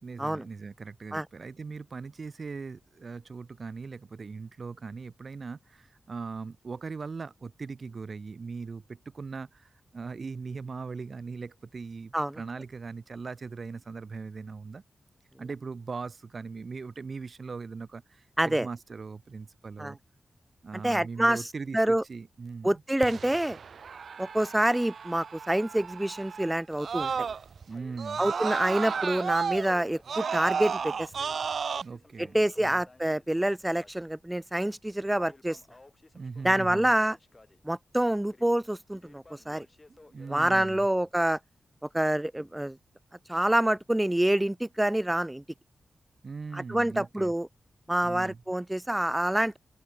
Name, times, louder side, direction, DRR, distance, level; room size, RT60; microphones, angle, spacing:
voice 1, 0.0-14.8 15.4-20.0 20.6-22.8 27.7-28.3 31.8-32.8 36.1-36.9 39.9-40.9 46.2-47.3 48.0-48.4, right 4 dB, 50° right, 1.5 m, -40 dB
voice 2, 18.4-18.7 19.8-19.9 20.8-21.4 21.7-22.0 22.6-23.6 24.2-27.3 28.2-31.1 32.2-35.6 36.4-37.2 37.6-39.7 40.3-41.4 41.8-42.8 43.3-45.4 46.5-47.5 47.9-49.6, right 1 dB, 10° right, 0.5 m, -27 dB
Crackle, 21.4-23.9 24.2-24.3 24.8-24.9 25.6-26.2 26.6-40.8, left 2 dB, 25° left, 4.3 m, -57 dB
Screaming, 23.0-27.6 28.0-31.8, right 6 dB, 65° right, 0.7 m, -33 dB
wide cardioid pair, 110°, 0 cm